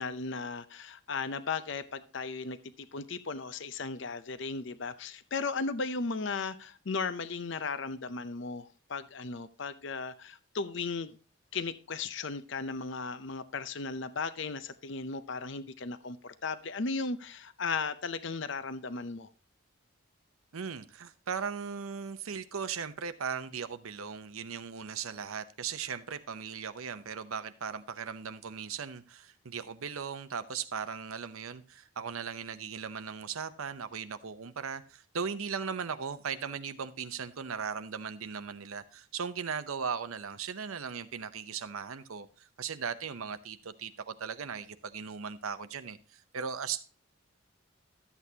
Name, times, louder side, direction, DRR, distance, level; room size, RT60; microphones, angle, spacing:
voice 1, 0.0-11.2 11.5-19.3, left 4 dB, 55° left, 0.6 m, -36 dB
voice 2, 20.5-46.8, right 6 dB, 80° right, 0.7 m, -38 dB
12.0 x 8.2 x 2.8 m
head